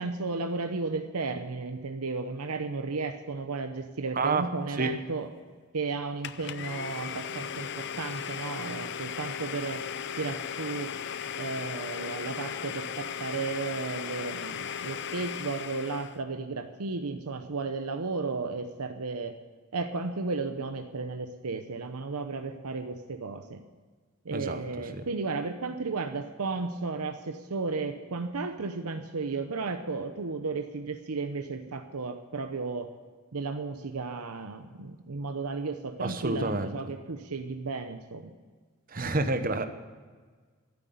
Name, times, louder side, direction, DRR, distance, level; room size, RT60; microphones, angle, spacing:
voice 1, 0.0-5.3 5.7-9.8 10.2-10.9 11.4-19.4 19.7-23.6 24.2-32.9 33.3-38.3, right 4 dB, 85° right, 7 dB, 0.8 m, -34 dB
Domestic sounds home sounds, 6.2-16.2, left 7 dB, 50° left, 0.5 m, -37 dB
voice 2, 24.3-24.6 24.9-25.0 36.0-36.7 38.9-39.7, right 3 dB, 40° right, 8 dB, 0.9 m, -28 dB
13.5 x 7.9 x 9.5 m, 1.5 s
head